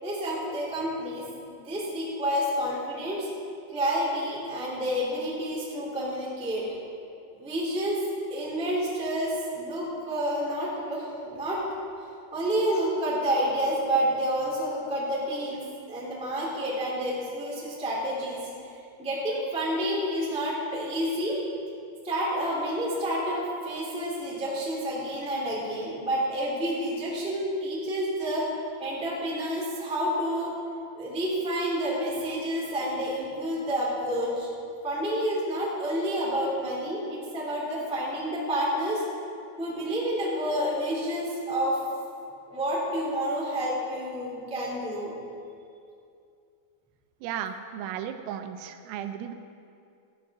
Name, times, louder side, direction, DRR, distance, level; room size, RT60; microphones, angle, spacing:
voice 1, 0.0-1.2 1.5-3.3 3.7-6.7 7.3-8.0 8.3-11.6 12.3-15.6 15.9-18.5 19.0-21.4 22.0-28.4 28.8-30.5 30.9-34.5 34.8-39.0 39.6-41.8 42.5-45.1, equal, 5° right, -5 dB, 0.9 m, -29 dB
voice 2, 47.2-49.4, right 9 dB, 85° right, 8 dB, 3.3 m, -35 dB
14.5 x 8.7 x 6.1 m, 2.5 s
omnidirectional pair, 5.8 m